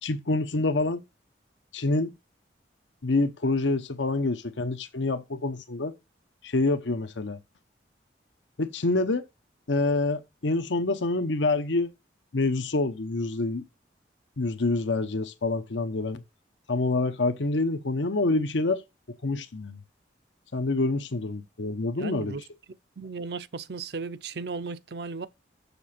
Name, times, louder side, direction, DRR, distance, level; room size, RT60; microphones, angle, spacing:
voice 1, 0.0-1.0 1.7-2.1 3.0-5.9 6.4-7.4 8.6-9.2 9.7-11.9 12.3-13.6 14.4-16.2 16.7-18.8 19.2-19.8 20.5-22.4, left 2 dB, 80° left, 0.9 m, -27 dB
voice 2, 22.0-22.4 23.0-25.3, right 4 dB, 60° right, 0.6 m, -35 dB
7.0 x 6.7 x 4.3 m
head